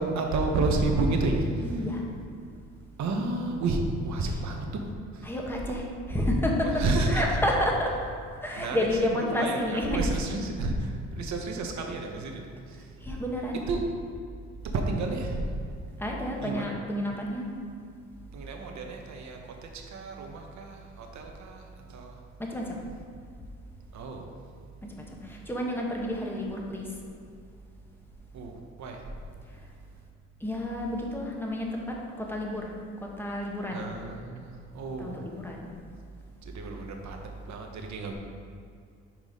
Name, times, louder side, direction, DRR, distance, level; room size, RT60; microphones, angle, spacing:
voice 1, 0.0-1.5 3.0-4.8 6.8-7.2 8.6-8.8 9.1-12.4 13.7-13.8 14.7-15.5 16.4-16.7 18.3-21.6 21.9-22.1 23.9-24.3 28.3-29.0 33.7-35.3 36.5-37.2 37.5-38.1, right 3 dB, 65° right, 3 dB, 1.0 m, -30 dB
voice 2, 1.6-2.0 4.2-4.4 5.2-8.0 8.4-10.1 13.0-13.6 16.0-17.5 22.4-22.8 24.8-26.9 29.5-29.7 30.4-33.9 35.0-35.7, left 1 dB, 5° left, -1 dB, 1.2 m, -30 dB
5.7 x 4.6 x 5.2 m, 2.3 s
cardioid pair, 90°, 30 cm